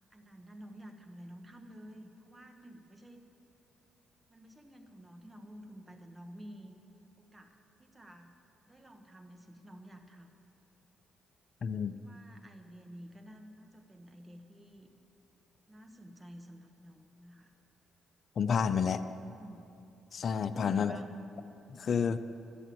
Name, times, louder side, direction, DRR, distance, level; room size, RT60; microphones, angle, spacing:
voice 1, 0.1-3.2 4.3-6.7 7.2-8.4 8.7-10.3 12.0-14.9 15.7-17.5 19.4-19.6 20.5-21.2, equal, 15° right, 5 dB, 1.2 m, -51 dB
voice 2, 11.6-12.0 18.4-19.0 20.1-21.0 21.7-22.2, left 6 dB, 50° left, 13 dB, 0.5 m, -30 dB
12.0 x 9.9 x 7.7 m, 2.7 s
cardioid pair, 90°, 0 cm